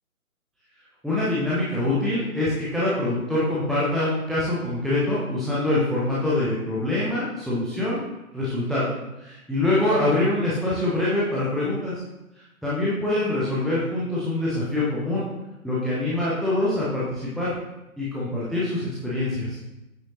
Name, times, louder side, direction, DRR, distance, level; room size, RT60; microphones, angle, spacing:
voice 1, 1.0-8.0 8.3-8.9 9.2-11.9 12.6-15.2 15.6-17.6 18.0-19.6, left 2 dB, ahead, -9 dB, 0.4 m, -24 dB
7.8 x 6.5 x 2.7 m, 0.99 s
figure-of-eight pair, 145°, 44 cm